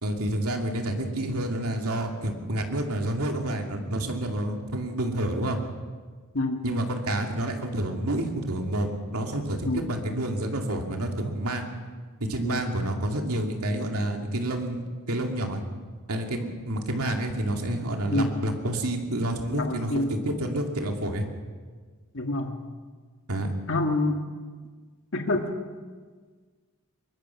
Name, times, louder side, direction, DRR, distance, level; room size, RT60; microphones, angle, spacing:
voice 1, 0.0-5.6 6.6-11.7 12.2-15.6 16.1-21.2 23.3-23.5, right 1 dB, 85° right, 2 dB, 2.6 m, -29 dB
voice 2, 19.5-20.1 22.1-22.6 23.7-24.2 25.1-25.5, left 2 dB, 60° left, 3 dB, 1.8 m, -27 dB
23.5 x 20.5 x 5.9 m, 1.5 s
head